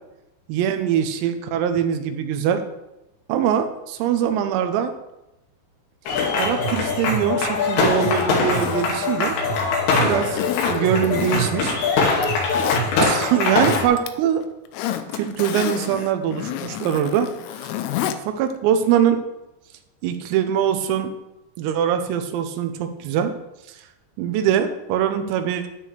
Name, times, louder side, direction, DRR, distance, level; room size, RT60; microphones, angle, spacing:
voice 1, 0.5-2.6 3.3-4.9 6.4-9.4 10.0-10.4 10.7-11.8 13.0-14.5 15.1-17.3 18.4-19.2 20.0-21.1 21.6-23.3 24.2-25.7, right 9 dB, 90° right, 7 dB, 3.7 m, -22 dB
sound 1, 6.1-13.9, left 3 dB, 75° left, 4.7 m, -22 dB
Zipper (clothing), 7.8-9.8 10.3-11.7 12.1-12.8 13.3-14.1 14.4-18.2 18.5-18.6, left 11 dB, 90° left, 3.4 m, -30 dB
12.5 x 10.0 x 3.4 m, 0.92 s
omnidirectional pair, 5.9 m